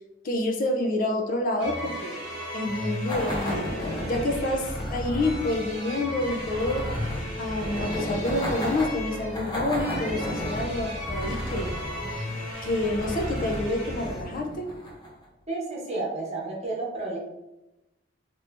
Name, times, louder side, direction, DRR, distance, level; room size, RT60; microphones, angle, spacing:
voice 1, 0.2-2.2 2.5-3.7 4.0-6.8 7.4-11.7 12.6-14.7, left 1 dB, 45° left, 3 dB, 0.4 m, -28 dB
sound 1, 1.6-14.2, left 1 dB, 5° right, 1.2 m, -36 dB
sound 2, 3.1-15.2, left 1 dB, 25° left, 0.9 m, -33 dB
voice 2, 15.5-17.2, right 2 dB, 35° right, -3 dB, 0.9 m, -31 dB
2.9 x 2.6 x 3.3 m, 0.97 s
head